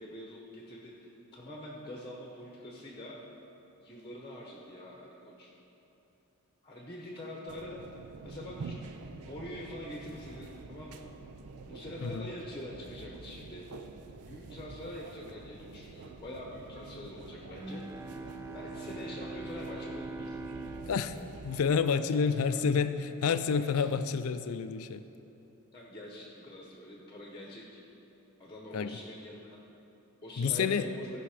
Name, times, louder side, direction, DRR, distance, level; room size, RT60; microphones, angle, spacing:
voice 1, 0.0-3.2 3.8-5.5 6.6-7.8 8.2-8.9 9.2-11.1 11.7-13.7 14.3-17.8 18.5-20.4 22.1-22.6 23.5-23.9 25.7-27.8 28.4-29.4 30.2-31.1, left 1 dB, 20° left, -2 dB, 1.0 m, -45 dB
sound 1, 7.5-21.6, right 3 dB, 85° right, 0.5 m, -47 dB
Bowed string instrument, 17.6-22.7, right 2 dB, 15° right, 0.3 m, -43 dB
voice 2, 21.4-25.0 28.7-29.0 30.4-30.9, left 6 dB, 70° left, 11 dB, 0.4 m, -29 dB
15.0 x 5.3 x 5.0 m, 3.0 s
head